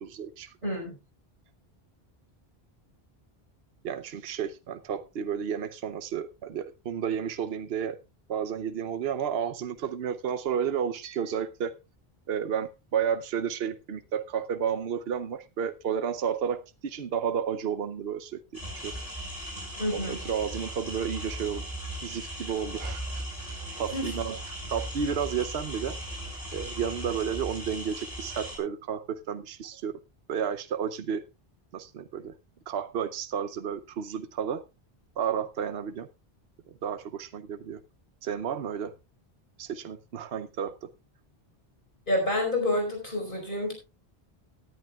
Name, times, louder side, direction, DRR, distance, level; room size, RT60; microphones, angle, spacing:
voice 1, 0.0-0.5 3.8-8.0 8.3-11.8 12.3-18.9 19.9-21.6 22.0-26.0 26.5-30.0 30.3-31.2 31.7-32.3 32.7-34.6 35.2-36.1 36.8-37.8 38.2-38.9 39.6-40.9, right 8 dB, 75° right, 11 dB, 1.0 m, -32 dB
voice 2, 0.6-0.9 19.8-20.2 23.9-24.1 42.1-43.7, left 1 dB, 55° left, 2 dB, 5.1 m, -28 dB
sound 1, 18.5-28.6, right 1 dB, 35° left, 6.4 m, -38 dB
18.0 x 10.5 x 2.4 m, 0.26 s
omnidirectional pair, 1.0 m